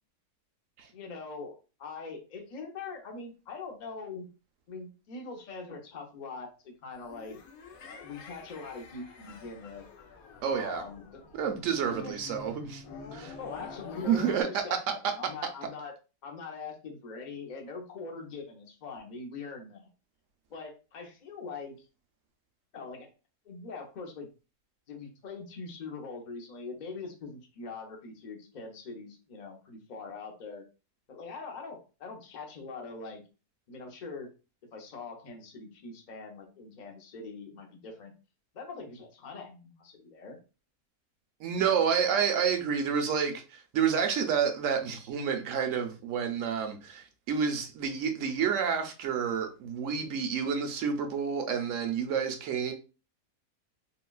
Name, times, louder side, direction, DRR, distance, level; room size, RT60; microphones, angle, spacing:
voice 1, 0.9-4.3 4.7-7.4 7.8-9.8 10.6-11.2 11.8-12.4 13.4-15.9 16.2-19.9 20.5-21.9 22.7-23.1 23.4-24.3 24.9-30.6 31.1-33.2 33.7-34.3 34.7-38.1 38.5-40.4, left 4 dB, 45° left, 0.6 m, -42 dB
sound 1, 7.0-14.4, left 4 dB, 75° left, 1.1 m, -47 dB
voice 2, 10.4-10.8 11.3-12.8 13.1-13.3 14.1-15.1 41.4-52.7, right 7 dB, 70° right, 0.9 m, -29 dB
3.7 x 2.2 x 2.3 m
omnidirectional pair, 1.6 m